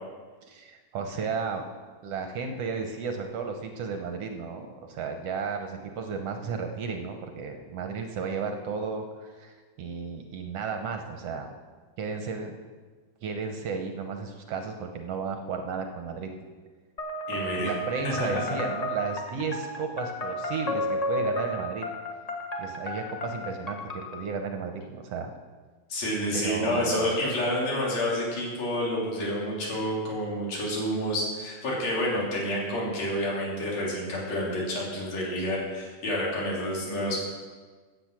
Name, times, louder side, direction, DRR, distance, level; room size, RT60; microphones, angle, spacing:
voice 1, 0.5-1.6 2.0-11.5 12.0-12.6 13.2-16.3 17.6-21.9 22.6-25.3 26.3-27.1, right 5 dB, 65° right, 5 dB, 1.8 m, -33 dB
sound 1, 17.0-24.2, left 1 dB, 35° left, 0.5 m, -33 dB
voice 2, 17.3-17.7 18.2-18.4 25.9-37.2, left 1 dB, 65° left, -4 dB, 4.4 m, -29 dB
15.0 x 8.7 x 6.1 m, 1.4 s
omnidirectional pair, 3.3 m